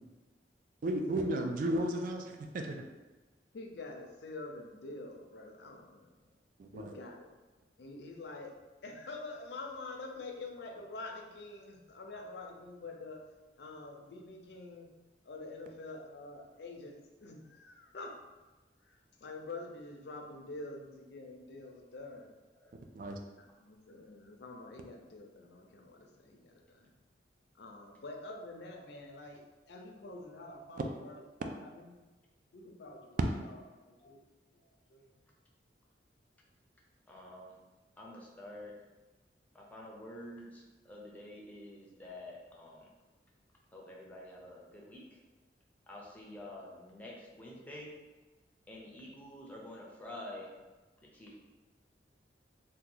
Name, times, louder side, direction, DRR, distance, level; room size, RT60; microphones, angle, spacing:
voice 1, 0.8-2.8 6.6-6.9 23.0-23.2, right 1 dB, 50° right, 4 dB, 0.3 m, -34 dB
voice 2, 3.5-6.3 6.7-7.3 7.8-8.5 8.8-13.2 13.6-14.9 15.2-18.2 18.8-22.4 23.4-26.9 27.6-32.0 32.5-34.2 34.5-35.2, left 2 dB, 70° left, 1 dB, 0.5 m, -47 dB
voice 3, 37.1-37.5 38.0-38.7 39.5-42.9 43.7-45.2 45.9-47.9 48.7-50.5 51.0-51.4, left 1 dB, 10° left, -3 dB, 0.5 m, -48 dB
2.8 x 2.2 x 3.7 m, 1.2 s
head